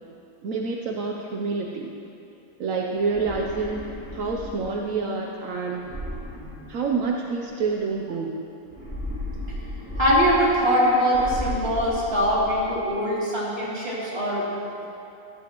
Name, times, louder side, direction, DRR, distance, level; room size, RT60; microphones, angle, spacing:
voice 1, 0.4-1.9 2.6-5.8 6.7-8.4, right 4 dB, 70° right, 0 dB, 1.1 m, -28 dB
sound 1, 3.0-4.9 5.8-7.3 8.7-10.8 11.1-12.8, left 1 dB, 10° right, 3.2 m, -35 dB
voice 2, 9.9-14.4 14.8-14.9, equal, 45° right, -8 dB, 3.4 m, -22 dB
15.5 x 13.5 x 3.0 m, 2.7 s
omnidirectional pair, 1.5 m